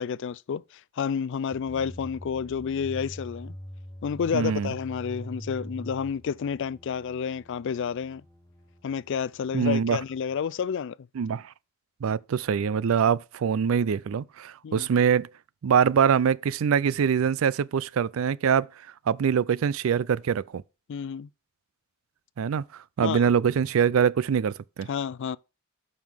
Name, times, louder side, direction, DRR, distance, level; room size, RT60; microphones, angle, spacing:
voice 1, 0.0-3.5 4.0-8.2 8.8-10.9 14.6-14.9 20.9-21.3 23.0-23.2 24.9-25.4, left 7 dB, 60° left, 0.4 m, -30 dB
sound 1, 1.5-10.4, equal, 15° left, 1.1 m, -44 dB
voice 2, 4.3-4.7 9.5-10.0 11.2-11.5 12.0-15.3 15.6-18.7 19.1-20.6 22.4-24.9, right 7 dB, 70° right, 0.4 m, -24 dB
9.4 x 5.6 x 3.5 m
head